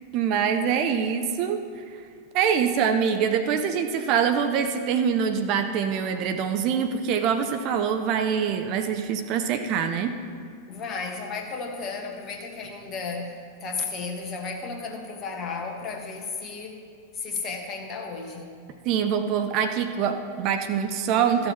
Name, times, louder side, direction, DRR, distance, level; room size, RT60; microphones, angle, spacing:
voice 1, 0.1-1.6 2.3-10.2 18.8-21.5, right 7 dB, 40° right, 7 dB, 0.7 m, -24 dB
voice 2, 10.7-16.8 17.1-18.6, left 4 dB, 30° left, 2 dB, 1.7 m, -34 dB
14.0 x 6.7 x 5.8 m, 2.1 s
figure-of-eight pair, 90°, 0 cm